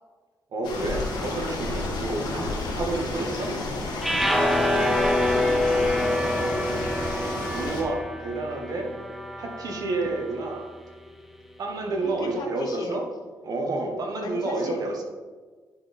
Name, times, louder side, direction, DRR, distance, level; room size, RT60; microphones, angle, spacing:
voice 1, 0.5-3.5 7.5-8.9 9.4-10.7 11.6-13.0 13.4-15.0, right 2 dB, 60° right, 2 dB, 1.4 m, -29 dB
sound 1, 0.6-7.8, left 2 dB, 90° left, 1.6 m, -31 dB
sound 2, 4.0-10.3, left 1 dB, ahead, 0.7 m, -26 dB
voice 2, 4.9-7.1 12.0-13.0 14.2-14.8, left 3 dB, 65° left, 3 dB, 1.2 m, -38 dB
10.0 x 4.5 x 3.6 m, 1.4 s
cardioid pair, 90°, 7 cm